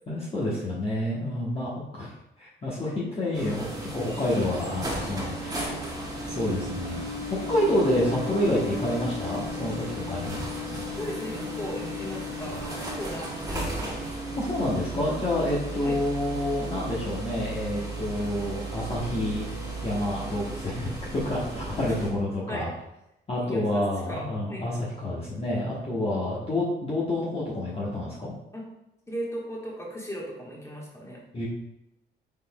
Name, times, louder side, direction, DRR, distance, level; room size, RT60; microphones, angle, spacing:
voice 1, 0.1-2.1 2.4-5.5 6.3-7.0 7.5-10.4 14.4-19.5 19.8-22.7 23.3-28.3 31.3-31.5, left 1 dB, 30° left, -7 dB, 1.1 m, -28 dB
sound 1, 3.3-22.1, right 1 dB, 20° right, 1.4 m, -34 dB
voice 2, 11.0-14.2 15.8-16.0 22.5-22.7 23.5-23.8 24.1-24.7 28.5-28.6 29.1-31.2, equal, 15° left, -3 dB, 1.4 m, -37 dB
5.4 x 4.1 x 2.3 m, 0.88 s
cardioid pair, 90°, 20 cm